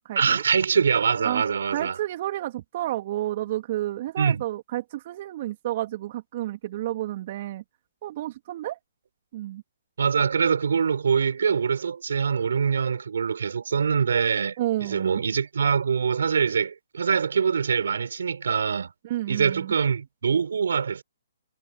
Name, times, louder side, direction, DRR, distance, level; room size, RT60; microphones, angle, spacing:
voice 1, 0.1-1.9 4.2-4.4 10.0-18.9 19.3-21.0, right 6 dB, 70° right, 3.4 m, -24 dB
voice 2, 1.7-7.6 8.0-8.8 9.3-9.6 14.6-15.2 19.0-19.7, right 14 dB, 45° right, 2.5 m, -30 dB
hypercardioid pair, 135°, 0 cm